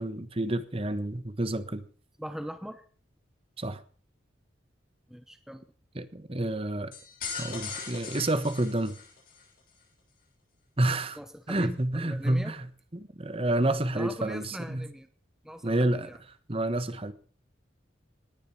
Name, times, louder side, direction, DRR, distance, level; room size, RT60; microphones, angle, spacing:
voice 1, 0.0-1.8 3.6-3.8 5.9-6.9 7.4-9.0 10.8-11.2 11.5-12.6 12.9-14.8 15.6-16.1 16.5-17.1, right 1 dB, 30° right, 12 dB, 1.3 m, -29 dB
voice 2, 2.2-2.8 5.1-5.6 11.2-12.5 13.9-15.1 15.4-16.2, equal, 5° right, 9 dB, 1.0 m, -40 dB
sound 1, 6.9-9.5, left 5 dB, 45° left, 7.6 m, -39 dB
19.0 x 10.5 x 6.0 m, 0.40 s
head